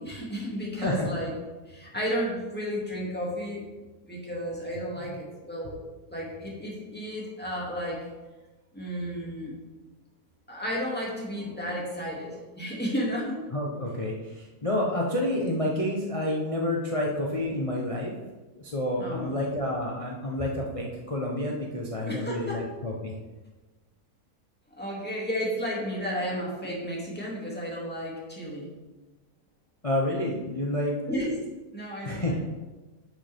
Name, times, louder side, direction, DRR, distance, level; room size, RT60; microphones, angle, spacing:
voice 1, 0.0-1.3 1.7-3.6 4.1-5.8 6.1-8.1 8.7-9.5 10.5-13.4 19.0-19.4 22.0-22.6 24.8-28.7 31.1-31.3 31.7-32.4, equal, 5° left, -5 dB, 2.3 m, -32 dB
voice 2, 0.8-1.1 13.5-18.1 18.5-23.1 29.8-31.0 32.0-32.4, left 1 dB, 30° left, -1 dB, 0.7 m, -29 dB
10.5 x 6.4 x 3.6 m, 1.2 s
omnidirectional pair, 1.9 m